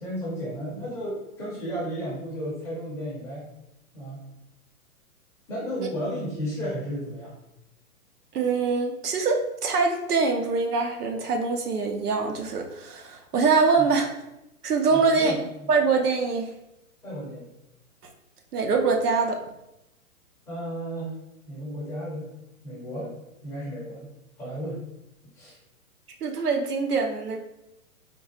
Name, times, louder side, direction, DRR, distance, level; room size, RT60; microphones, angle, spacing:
voice 1, 0.0-3.5 3.9-4.3 5.5-7.4 13.8-13.9 14.9-15.4 17.0-17.5 20.5-21.1 21.5-22.3 22.6-23.1 23.4-24.1 24.4-24.8 25.3-25.5, equal, 5° left, -8 dB, 0.4 m, -33 dB
voice 2, 8.3-14.1 14.6-15.3 15.7-16.5 18.5-19.4 26.2-27.4, right 4 dB, 90° right, 4 dB, 0.8 m, -24 dB
3.8 x 2.4 x 2.9 m, 0.88 s
hypercardioid pair, 130°, 45 cm